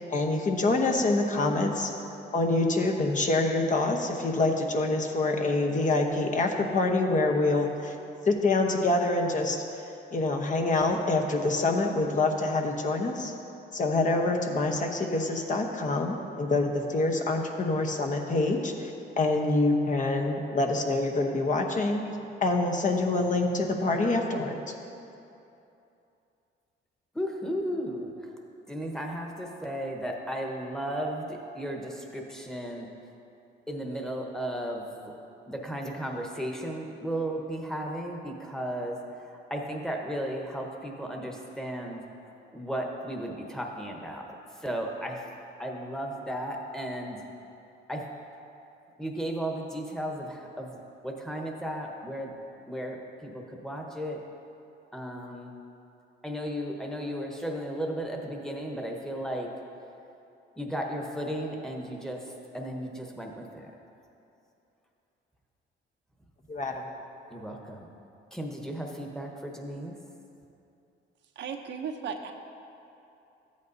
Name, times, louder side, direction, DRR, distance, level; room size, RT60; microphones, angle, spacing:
voice 1, 0.0-1.9 2.3-7.9 8.3-9.6 10.1-13.3 13.7-22.0 22.4-24.5 66.5-66.8, left 2 dB, 40° left, 2 dB, 0.9 m, -26 dB
voice 2, 27.1-28.3 28.7-32.9 33.7-35.1 35.5-42.0 42.5-44.3 44.6-45.3 45.6-47.2 47.9-48.1 49.0-50.8 51.0-52.4 52.7-54.2 54.9-55.5 56.2-59.5 60.6-62.3 62.5-63.7 67.3-68.0 68.3-69.9, equal, 5° left, 1 dB, 1.1 m, -35 dB
voice 3, 71.4-72.3, right 6 dB, 65° right, 4 dB, 0.7 m, -35 dB
13.5 x 8.3 x 2.7 m, 2.8 s
cardioid pair, 90°, 20 cm